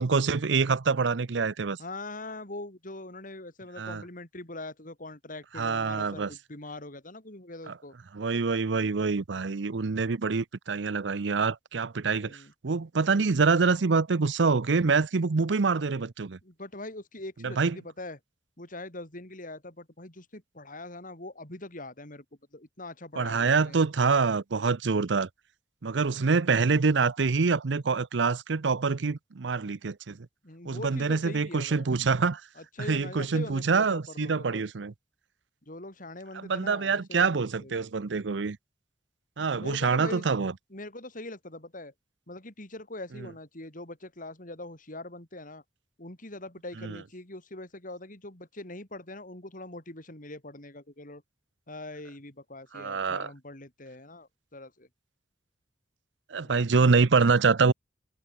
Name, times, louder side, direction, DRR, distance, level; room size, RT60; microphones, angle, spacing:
voice 1, 0.0-1.8 3.8-4.0 5.6-6.3 7.7-7.8 8.1-16.4 17.4-17.8 23.2-25.3 25.8-30.3 30.6-32.4 32.9-34.9 36.3-38.6 39.4-40.5 46.8-47.0 52.7-53.3 56.3-57.7, right 4 dB, 90° right, 0.7 m, -26 dB
voice 2, 1.8-7.9 12.2-12.5 16.4-18.2 18.6-22.2 22.5-23.8 30.4-31.9 32.6-34.6 35.6-37.8 39.6-40.3 40.7-41.9 42.3-45.6 46.0-51.2 51.7-54.9 56.4-56.7, left 2 dB, 50° left, 5.1 m, -42 dB
head